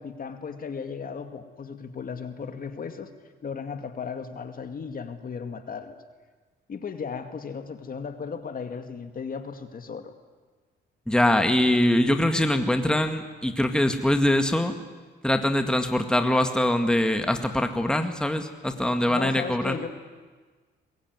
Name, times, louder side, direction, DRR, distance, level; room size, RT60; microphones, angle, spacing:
voice 1, 0.0-3.1 3.4-6.0 6.7-10.1 19.1-19.9, left 5 dB, 45° left, 7 dB, 2.3 m, -36 dB
voice 2, 11.1-14.8 15.2-19.8, left 1 dB, 5° left, 6 dB, 2.0 m, -23 dB
22.0 x 21.5 x 9.6 m, 1.4 s
cardioid pair, 90°, 20 cm